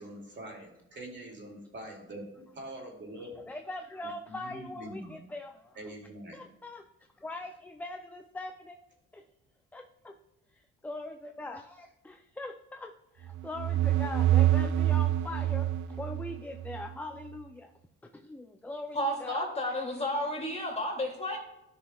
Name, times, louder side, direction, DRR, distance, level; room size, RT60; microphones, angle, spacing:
voice 1, 0.0-3.4 4.0-5.1 5.7-6.4, right 1 dB, 40° right, 0 dB, 2.5 m, -44 dB
voice 2, 3.5-5.9 6.3-6.8 7.2-8.8 9.1-9.2 9.7-10.2 10.5-17.7 18.0-19.8, left 2 dB, 5° left, 5 dB, 0.4 m, -42 dB
sound 1, 13.3-16.9, right 13 dB, 80° right, 0.6 m, -26 dB
voice 3, 18.9-21.4, left 1 dB, 20° left, 0 dB, 2.5 m, -32 dB
12.5 x 6.1 x 2.3 m, 0.90 s
cardioid pair, 90°, 30 cm